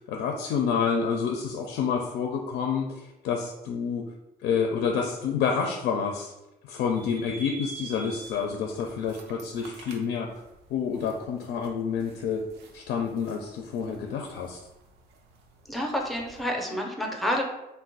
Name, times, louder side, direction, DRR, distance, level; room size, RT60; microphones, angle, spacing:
voice 1, 0.1-4.1 4.4-6.3 6.6-10.4 10.7-12.4 12.7-14.6, left 6 dB, 75° left, 2 dB, 0.4 m, -28 dB
sound 1, 6.9-16.4, right 3 dB, 75° right, 0.5 m, -48 dB
voice 2, 15.7-17.4, equal, ahead, 1 dB, 0.5 m, -29 dB
2.4 x 2.1 x 3.8 m, 0.95 s
cardioid pair, 110°, 17 cm